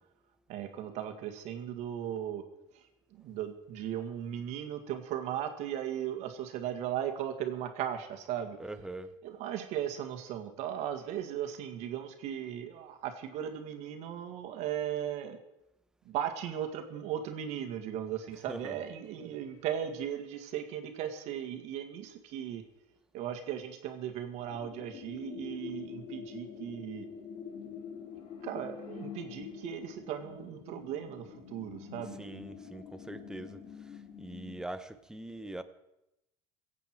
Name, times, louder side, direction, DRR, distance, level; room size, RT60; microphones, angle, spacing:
voice 1, 0.5-2.4 3.2-8.6 9.2-15.4 16.0-22.6 23.1-27.1 28.4-32.2, right 10 dB, 65° right, 6 dB, 1.7 m, -37 dB
voice 2, 8.6-9.1 18.5-18.8 32.2-33.6 34.2-35.6, right 1 dB, 5° right, 10 dB, 0.8 m, -42 dB
sound 1, 24.5-34.6, left 7 dB, 50° left, 2.2 m, -45 dB
21.5 x 8.3 x 4.6 m, 0.88 s
cardioid pair, 125°, 12 cm